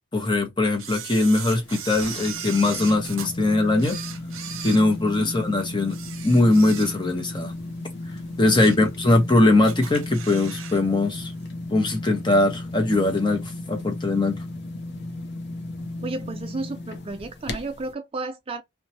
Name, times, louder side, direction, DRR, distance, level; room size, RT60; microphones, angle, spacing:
voice 1, 0.1-4.0 4.6-6.0 6.2-7.5 8.4-11.3 11.7-14.4, left 2 dB, 20° left, 0.8 m, -21 dB
Camera, 0.8-3.3 3.8-5.4 5.8-7.2 7.6-7.8 8.3-8.9 9.2-9.3 9.7-10.8 11.1-11.2, right 9 dB, 65° right, 0.7 m, -37 dB
sound 1, 1.6-17.9, left 2 dB, 55° left, 0.6 m, -35 dB
voice 2, 8.5-8.8 16.0-18.6, right 3 dB, 25° right, 0.3 m, -33 dB
3.0 x 2.2 x 2.7 m
head